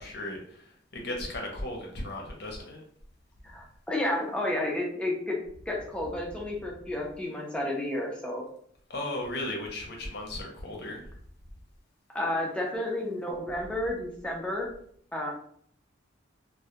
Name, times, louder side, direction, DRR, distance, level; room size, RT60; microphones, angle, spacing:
voice 1, 0.0-2.8 8.9-11.1, left 1 dB, 55° left, 0 dB, 0.6 m, -36 dB
voice 2, 3.4-5.4 5.7-8.5 12.1-14.7 15.1-15.3, left 1 dB, 5° left, -1 dB, 0.4 m, -31 dB
2.2 x 2.0 x 2.7 m, 0.63 s
head